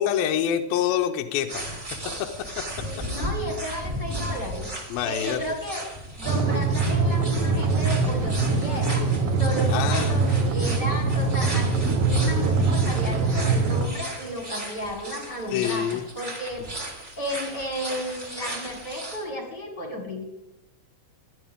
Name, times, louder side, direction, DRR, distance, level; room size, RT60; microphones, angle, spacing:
voice 1, 0.0-1.7 4.9-5.4 9.7-10.3 15.5-16.0, left 10 dB, 80° left, 4 dB, 2.6 m, -26 dB
sound 1, 1.5-19.2, right 1 dB, 20° right, 3.5 m, -36 dB
voice 2, 2.8-4.7 5.0-9.1 9.4-16.7 17.2-20.2, equal, 35° left, 2 dB, 2.1 m, -33 dB
sound 2, 6.3-13.9, right 4 dB, 70° right, 1.4 m, -23 dB
19.5 x 12.0 x 3.6 m, 0.90 s
omnidirectional pair, 4.4 m